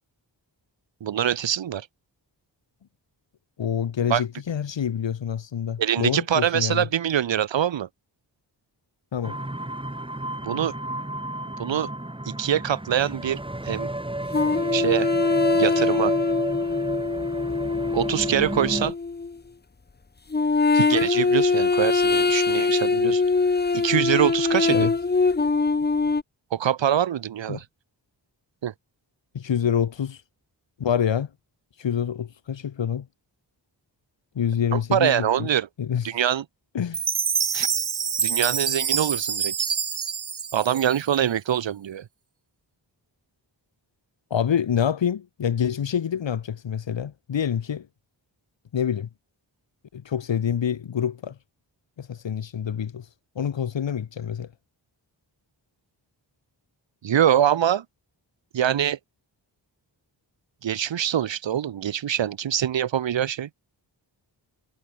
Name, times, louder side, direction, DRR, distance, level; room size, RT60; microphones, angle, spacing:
voice 1, 1.0-1.9 4.1-4.2 5.8-7.9 10.4-10.7 11.6-11.9 12.3-13.9 14.7-15.1 15.6-16.1 17.9-18.9 20.7-23.2 23.7-24.9 26.5-27.6 28.6-28.7 34.7-35.7 36.0-36.4 37.5-37.7 38.2-39.5 40.5-42.1 57.0-57.8 58.5-59.0 60.6-63.5, right 10 dB, 85° right, 1.0 m, -24 dB
voice 2, 3.6-6.9 9.1-9.4 24.7-24.9 27.5-27.6 29.3-30.2 30.8-31.3 31.8-33.1 34.3-35.5 35.8-36.1 36.7-37.0 44.3-47.9 48.7-49.1 49.9-51.4 52.0-53.1 53.3-54.5, left 8 dB, 80° left, 1.7 m, -26 dB
sound 1, 9.2-18.9, right 1 dB, 10° right, 6.2 m, -31 dB
sound 2, 14.3-19.4 20.3-26.2, left 4 dB, 20° left, 0.9 m, -23 dB
Chime, 36.9-41.3, right 6 dB, 60° right, 2.2 m, -26 dB
wide cardioid pair, 150°, 44 cm